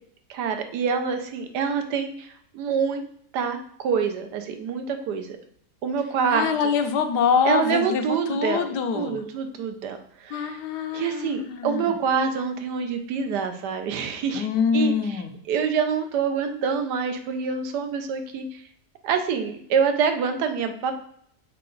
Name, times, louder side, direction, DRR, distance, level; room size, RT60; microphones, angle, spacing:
voice 1, 0.3-3.0 3.3-5.4 5.8-6.5 7.4-10.6 10.9-14.5 14.7-18.6 19.0-20.9, right 6 dB, 80° right, 7 dB, 1.3 m, -26 dB
voice 2, 6.3-9.2 10.3-11.9 14.3-15.3, left 6 dB, 80° left, 7 dB, 1.3 m, -25 dB
6.6 x 4.7 x 3.9 m, 0.66 s
omnidirectional pair, 1.7 m